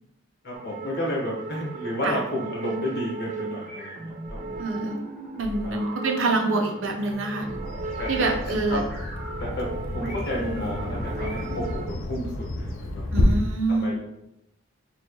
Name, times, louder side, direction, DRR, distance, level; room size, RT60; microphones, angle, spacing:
voice 1, 0.4-4.4 5.6-5.7 8.0-8.3 8.7-8.8 9.4-9.7 9.9-12.3 12.5-13.0 13.7-14.0, left 1 dB, 50° left, -3 dB, 1.4 m, -31 dB
sound 1, 0.5-11.9, right 4 dB, 35° right, 0.3 m, -38 dB
sound 2, 3.7-11.5, right 1 dB, 5° left, 1.3 m, -39 dB
voice 2, 4.6-5.0 5.4-7.5 8.1-8.8 13.1-13.9, right 2 dB, 70° right, 3 dB, 0.6 m, -26 dB
Bird vocalization bird call bird song, 7.5-13.2, left 2 dB, 85° left, 0.6 m, -32 dB
4.3 x 3.0 x 3.1 m, 0.85 s
head